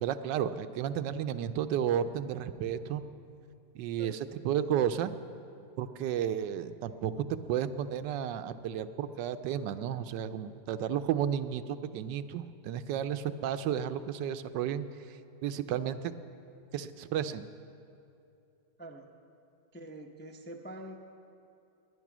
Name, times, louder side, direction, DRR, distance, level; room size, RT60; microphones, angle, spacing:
voice 1, 0.0-3.0 3.7-5.1 5.8-15.2 15.4-16.1 16.7-17.5, right 9 dB, 80° right, 11 dB, 1.2 m, -32 dB
voice 2, 18.8-19.1 19.7-21.0, right 1 dB, 15° left, 1 dB, 0.4 m, -45 dB
20.5 x 9.9 x 6.1 m, 2.6 s
omnidirectional pair, 2.0 m